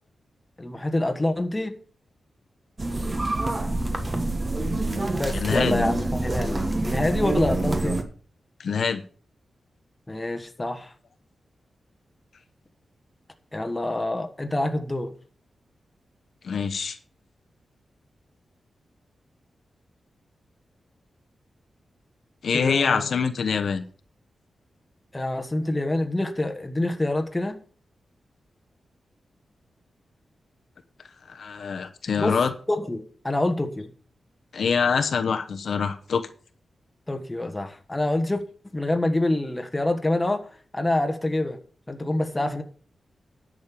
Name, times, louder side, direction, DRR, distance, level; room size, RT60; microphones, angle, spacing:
voice 1, 0.6-1.8 5.2-8.0 10.1-10.9 13.5-15.2 22.5-23.1 25.1-27.6 32.2-32.4 32.7-33.9 37.1-38.4 38.7-40.5 40.7-41.6 41.9-42.6, left 1 dB, 15° left, 6 dB, 1.3 m, -26 dB
sound 1, 2.8-8.0, right 2 dB, 25° right, 1.4 m, -26 dB
voice 2, 5.3-5.8 8.6-9.0 16.4-17.0 22.4-23.8 31.3-32.5 34.5-36.3, left 6 dB, 65° left, 7 dB, 1.0 m, -25 dB
10.5 x 6.5 x 6.8 m, 0.43 s
wide cardioid pair, 150°, 0 cm